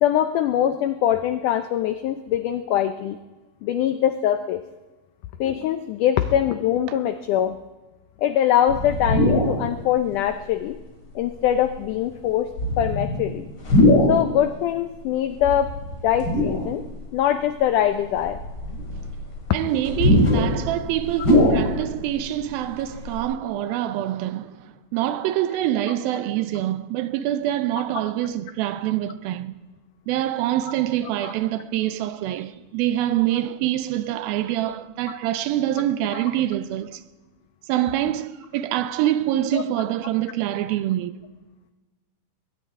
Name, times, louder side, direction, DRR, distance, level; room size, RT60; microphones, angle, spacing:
voice 1, 0.0-3.2 3.6-4.6 5.4-7.6 8.2-10.8 11.2-13.5 14.1-15.7 16.0-16.9 17.1-18.4 19.6-19.7 31.2-31.3 36.1-36.2 39.5-39.6, left 10 dB, 85° left, 1.8 m, -23 dB
sound 1, 8.7-9.6 10.3-10.4 11.4-11.8 12.5-14.3 15.4-16.9 17.5-17.6 18.2-22.1 22.4-22.5 22.7-23.2, left 1 dB, 30° left, 3.2 m, -21 dB
voice 2, 19.5-29.6 30.1-37.0 37.7-41.1, right 13 dB, 80° right, 2.4 m, -25 dB
21.0 x 17.5 x 3.6 m
omnidirectional pair, 4.4 m